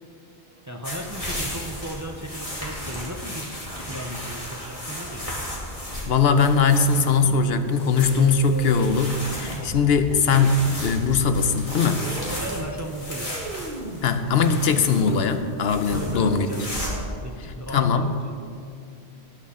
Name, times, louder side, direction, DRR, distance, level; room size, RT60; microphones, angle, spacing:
voice 1, 0.7-3.6 3.9-5.4 12.4-13.3 15.9-16.6 17.2-18.5, right 1 dB, 20° right, 4 dB, 0.6 m, -36 dB
sound 1, 0.8-17.2, equal, 30° left, 2.7 m, -35 dB
voice 2, 6.1-12.0 14.0-16.5 17.7-18.1, left 5 dB, 70° left, 9 dB, 0.9 m, -20 dB
sound 2, 7.0-17.0, right 1 dB, 55° right, 1.3 m, -37 dB
19.0 x 8.4 x 3.7 m, 2.4 s
omnidirectional pair, 1.1 m